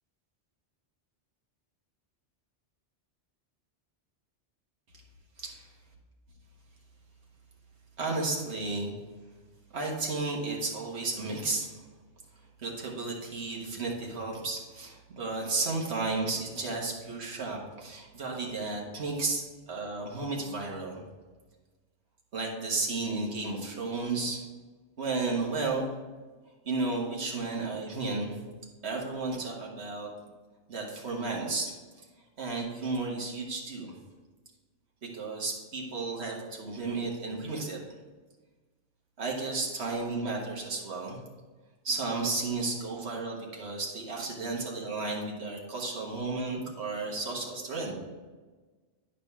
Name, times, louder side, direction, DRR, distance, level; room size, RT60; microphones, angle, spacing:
voice 1, 8.0-8.9 9.7-11.8 12.6-21.0 22.3-24.4 25.0-25.9 26.6-28.4 28.8-30.1 30.7-32.0 32.4-34.0 35.0-37.8 39.2-41.2 41.8-47.9, right 3 dB, 70° right, -1 dB, 1.6 m, -33 dB
10.0 x 5.1 x 3.6 m, 1.3 s
omnidirectional pair, 1.2 m